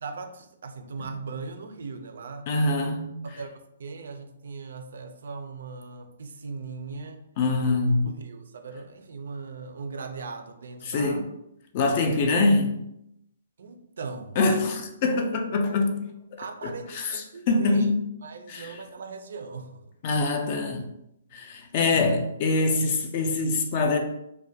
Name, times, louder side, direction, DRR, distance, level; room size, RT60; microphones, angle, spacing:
voice 1, 0.0-2.5 3.2-3.5 3.8-7.3 8.0-11.2 13.6-14.4 16.4-17.9 18.2-19.8, right 4 dB, 70° right, 0.3 m, -39 dB
voice 2, 2.5-3.1 7.4-8.1 10.8-11.2 11.7-12.8 14.4-16.0 16.3-18.1 18.5-18.8 20.0-20.9 21.3-24.0, left 3 dB, 35° left, 0.3 m, -24 dB
2.3 x 2.1 x 2.6 m
hypercardioid pair, 165°, 0 cm